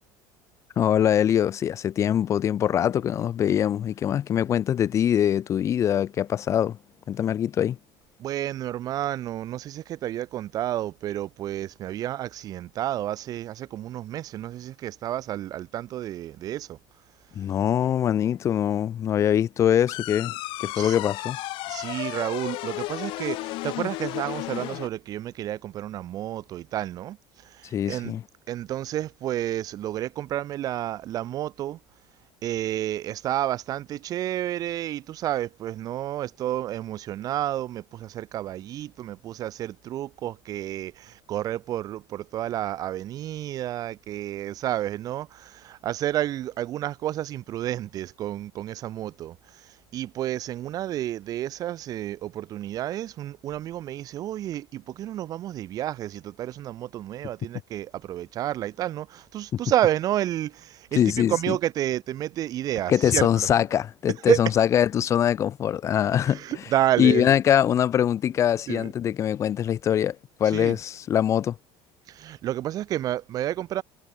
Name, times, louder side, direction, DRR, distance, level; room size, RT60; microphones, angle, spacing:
voice 1, 0.8-6.8 7.1-7.8 17.3-20.3 20.6-21.4 27.7-28.2 59.5-59.6 60.9-61.6 62.9-66.4 67.0-71.5, left 10 dB, 30° left, 1.4 m, -23 dB
voice 2, 8.2-16.8 20.7-20.9 21.7-27.2 27.6-28.1 28.5-31.8 32.4-49.4 49.9-61.0 61.3-63.3 64.3-64.4 66.3-67.3 68.7-68.9 70.5-70.8 72.1-73.8, right 13 dB, 35° right, 1.6 m, -30 dB
sound 1, 19.9-24.9, left 20 dB, 50° left, 4.7 m, -33 dB
cardioid pair, 170°, 11 cm